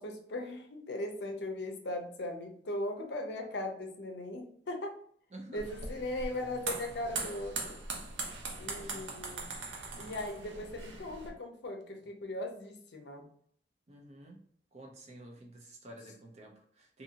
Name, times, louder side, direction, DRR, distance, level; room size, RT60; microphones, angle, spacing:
voice 1, 0.0-5.0 5.5-7.8 8.6-9.6 10.0-13.3, left 1 dB, 65° left, 4 dB, 0.5 m, -39 dB
voice 2, 5.3-5.7 8.7-9.1 13.9-14.4 14.7-17.0, right 1 dB, 35° right, 2 dB, 0.5 m, -51 dB
sound 1, 5.6-11.3, right 3 dB, 85° right, 0.6 m, -40 dB
2.7 x 2.6 x 2.7 m, 0.63 s
head